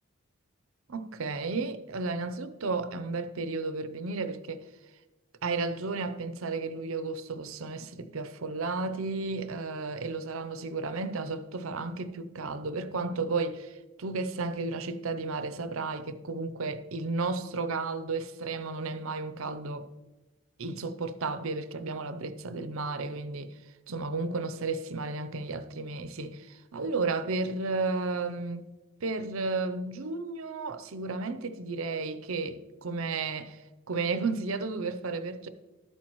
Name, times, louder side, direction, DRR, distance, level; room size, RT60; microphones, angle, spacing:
voice 1, 0.9-4.6 5.4-19.9 20.6-23.5 23.9-28.7 29.0-33.6 33.9-35.5, right 3 dB, 65° right, 0.6 m, -33 dB
12.0 x 8.7 x 3.0 m
head